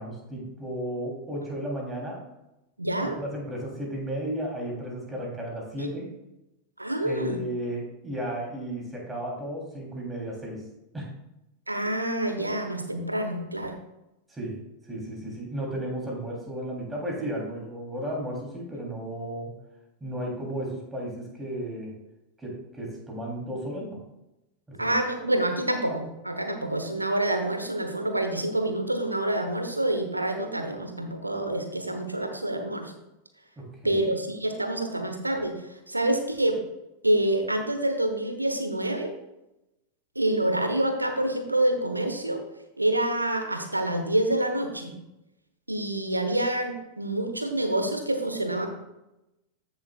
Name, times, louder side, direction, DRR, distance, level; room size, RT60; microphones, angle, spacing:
voice 1, 0.0-2.2 3.2-6.1 7.0-10.6 10.9-11.1 14.3-14.6 14.9-19.5 20.0-21.9 22.4-24.0 24.7-24.9 33.6-34.0, right 1 dB, 10° right, -2 dB, 3.3 m, -34 dB
voice 2, 2.8-3.2 5.8-5.9 6.8-7.4 11.7-13.7 24.8-32.9 33.8-35.6 35.9-36.6 37.0-39.1 40.1-42.4 42.8-44.9 45.7-48.7, right 1 dB, 85° right, 5 dB, 1.2 m, -27 dB
14.5 x 7.1 x 2.4 m, 0.92 s
figure-of-eight pair, 90°, 0 cm